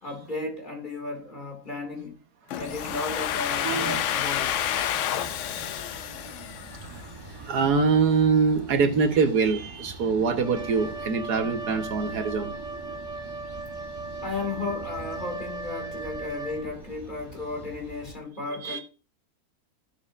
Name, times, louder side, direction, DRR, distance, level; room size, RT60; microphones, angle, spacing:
voice 1, 0.0-2.2 2.6-4.6 14.2-18.8, left 3 dB, 30° left, 2.4 m, -34 dB
Domestic sounds home sounds, 2.5-7.3, left 11 dB, 65° left, 0.8 m, -29 dB
sound 1, 2.6-18.1, right 2 dB, 15° right, 1.4 m, -44 dB
voice 2, 3.6-4.0 4.9-5.9 6.2-6.3 6.8-12.5 18.6-18.8, right 5 dB, 90° right, 1.8 m, -25 dB
Wind instrument woodwind instrument, 10.4-17.0, right 3 dB, 55° right, 1.3 m, -37 dB
14.5 x 7.1 x 2.5 m
omnidirectional pair, 1.7 m